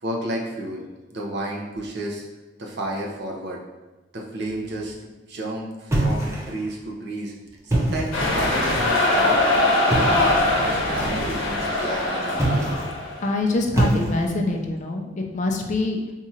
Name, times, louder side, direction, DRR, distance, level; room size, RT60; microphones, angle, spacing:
voice 1, 0.0-2.2 2.6-3.6 4.1-7.3 7.6-9.4 10.0-10.2 10.7-12.7, right 1 dB, 60° right, -2 dB, 0.6 m, -31 dB
sound 1, 5.9-6.7 7.6-8.3 9.9-10.3 12.3-13.0 13.7-14.5, right 1 dB, 15° right, 0.5 m, -24 dB
sound 2, 8.1-13.3, left 1 dB, 80° left, 0.8 m, -22 dB
voice 2, 13.2-16.0, left 2 dB, 40° left, 2 dB, 0.4 m, -24 dB
2.8 x 2.4 x 4.2 m, 1.2 s
head